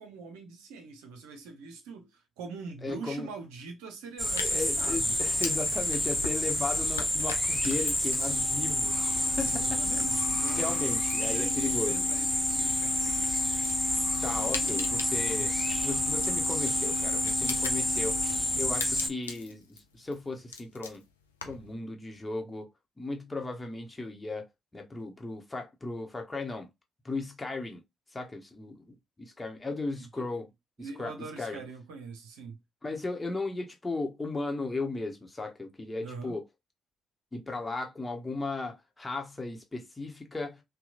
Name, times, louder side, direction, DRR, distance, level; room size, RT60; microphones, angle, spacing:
voice 1, 0.0-5.2 9.4-10.7 11.2-13.1 14.4-14.8 15.3-15.6 30.0-30.3 30.8-32.6 36.0-36.3, right 4 dB, 75° right, 0.7 m, -43 dB
voice 2, 2.8-3.3 4.4-8.9 9.4-9.8 10.6-12.1 13.2-13.3 14.2-15.5 15.8-18.2 18.6-21.0 21.4-22.7 23.0-24.4 24.7-26.7 27.0-27.8 28.1-30.4 31.0-31.6 32.8-36.4 37.3-40.6, left 3 dB, 25° left, 1.0 m, -36 dB
sound 1, 4.2-21.7, left 5 dB, 90° left, 0.3 m, -44 dB
sound 2, 4.2-19.1, left 1 dB, ahead, 0.6 m, -29 dB
Organ, 8.3-19.5, left 8 dB, 75° left, 0.8 m, -39 dB
2.8 x 2.2 x 2.5 m
figure-of-eight pair, 40°, 0 cm